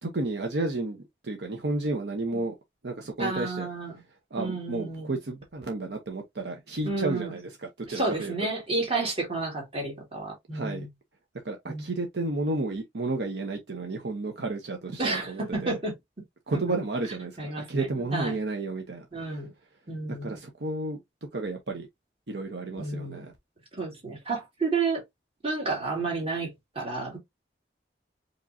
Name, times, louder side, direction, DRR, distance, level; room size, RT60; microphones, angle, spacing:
voice 1, 0.0-2.5 2.8-3.7 4.3-8.3 10.5-10.9 11.4-15.8 16.5-19.4 20.1-21.0 21.3-21.9 22.3-23.3, right 2 dB, 70° right, 0.8 m, -32 dB
voice 2, 3.2-3.9 4.4-5.2 6.8-7.3 7.8-10.9 11.7-11.8 15.0-15.9 16.7-16.8 17.4-17.9 18.1-18.3 19.1-19.5 19.9-20.4 22.8-23.3 23.7-25.0 25.4-27.2, right 3 dB, 30° right, 2.1 m, -31 dB
5.0 x 3.1 x 2.6 m
head